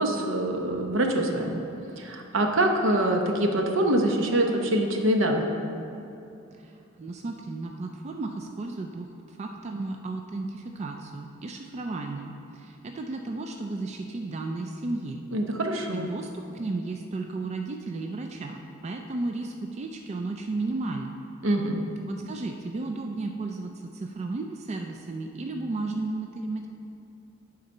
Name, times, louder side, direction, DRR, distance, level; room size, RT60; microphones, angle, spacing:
voice 1, 0.0-1.6 2.0-5.5 15.3-16.1 21.4-21.8, right 1 dB, 70° right, 3 dB, 0.8 m, -24 dB
voice 2, 6.6-15.2 15.9-21.1 22.1-26.7, right 2 dB, 35° right, 3 dB, 0.3 m, -34 dB
9.4 x 3.9 x 5.4 m, 2.7 s
head